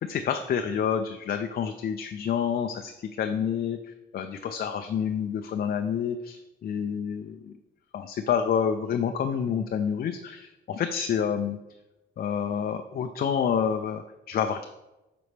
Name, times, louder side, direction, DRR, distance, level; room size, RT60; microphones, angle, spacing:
voice 1, 0.0-7.5 7.9-11.6 12.2-14.6, left 7 dB, 50° left, 6 dB, 0.4 m, -28 dB
6.0 x 5.1 x 3.3 m, 0.99 s
cardioid pair, 90°, 20 cm